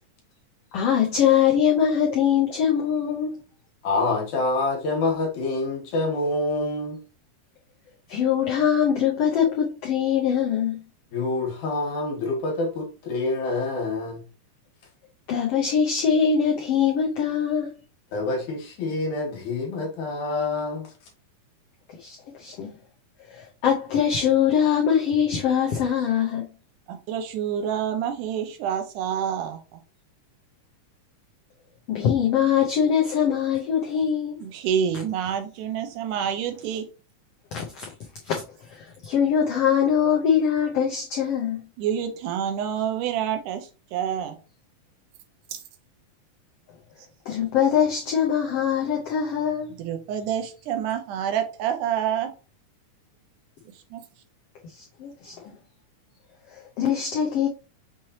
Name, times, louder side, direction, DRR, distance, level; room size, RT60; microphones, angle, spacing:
voice 1, 0.7-3.4 8.1-10.8 15.3-17.7 21.9-22.7 23.3-26.4 31.9-34.5 37.5-37.9 38.2-38.4 38.7-41.6 47.3-49.7 54.7-55.5 56.5-57.5, left 8 dB, 90° left, 1.3 m, -23 dB
voice 2, 3.8-7.0 11.1-14.2 18.1-20.9, left 2 dB, 70° left, 2.6 m, -26 dB
voice 3, 26.9-29.8 34.4-36.8 41.8-44.3 49.8-52.3 53.9-54.0, right 9 dB, 75° right, 2.2 m, -27 dB
6.0 x 3.1 x 2.8 m
omnidirectional pair, 3.8 m